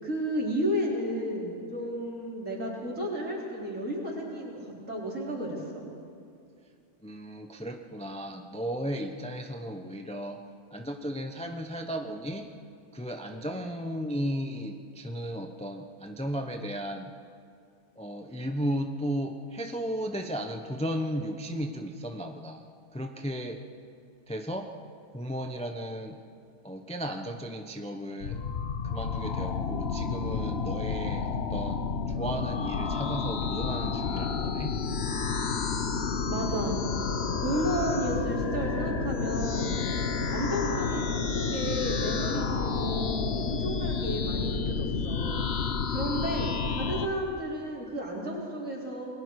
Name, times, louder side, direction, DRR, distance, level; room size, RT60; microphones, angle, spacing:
voice 1, 0.0-4.6 4.9-5.9 36.3-36.8 37.4-39.8 40.3-45.5 45.9-49.1, right 1 dB, 50° right, -4 dB, 4.5 m, -32 dB
voice 2, 7.0-10.4 10.7-12.5 12.9-17.1 18.0-22.6 22.9-23.6 24.3-24.7 25.1-26.2 26.6-28.4 28.8-34.8, equal, 5° left, 4 dB, 0.6 m, -35 dB
sound 1, 28.2-47.1, left 5 dB, 45° left, 1.1 m, -30 dB
28.5 x 21.0 x 4.8 m, 2.3 s
omnidirectional pair, 1.6 m